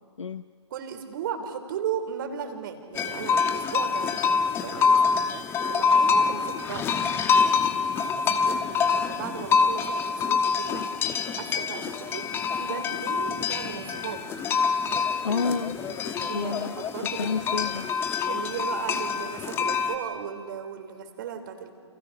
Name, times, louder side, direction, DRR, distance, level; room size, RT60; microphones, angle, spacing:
voice 1, 0.7-5.3 5.7-6.9 7.4-7.6 8.1-10.9 11.4-14.2 16.0-17.4 18.2-21.7, right 8 dB, 45° right, 7 dB, 3.5 m, -36 dB
sound 1, 3.0-20.0, left 5 dB, 15° left, 1.3 m, -26 dB
voice 2, 15.2-15.8 16.3-16.7 17.2-17.9, left 5 dB, 80° left, 13 dB, 0.8 m, -29 dB
29.5 x 28.5 x 5.8 m, 2.2 s
figure-of-eight pair, 135°, 15 cm